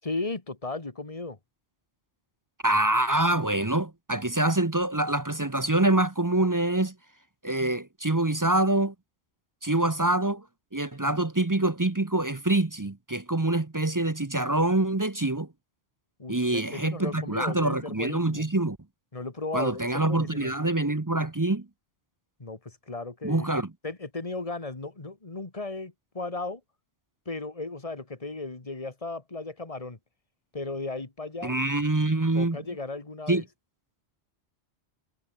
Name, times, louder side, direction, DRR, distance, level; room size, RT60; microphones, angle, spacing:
voice 1, 0.0-1.4 16.2-18.4 19.1-20.5 22.4-23.5 23.8-26.6 27.3-30.0 30.5-31.6 32.3-33.4, left 3 dB, 30° left, 2.1 m, -35 dB
voice 2, 2.6-6.9 7.4-8.9 9.6-10.4 10.7-15.5 16.3-18.8 19.5-21.7 23.2-23.7 31.4-32.6 33.3-33.4, right 2 dB, 20° right, 0.8 m, -25 dB
omnidirectional pair, 1.1 m